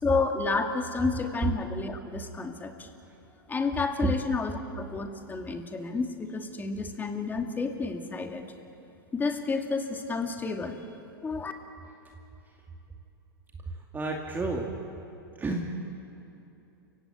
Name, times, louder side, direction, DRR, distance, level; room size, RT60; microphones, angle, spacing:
voice 1, 0.0-2.9 3.5-8.5 9.1-10.9 11.2-11.5, left 4 dB, 15° left, 4 dB, 2.6 m, -30 dB
voice 2, 13.9-14.7 15.4-15.8, right 2 dB, 15° right, 1 dB, 2.4 m, -31 dB
30.0 x 16.5 x 9.2 m, 2.9 s
hypercardioid pair, 110°, 13 cm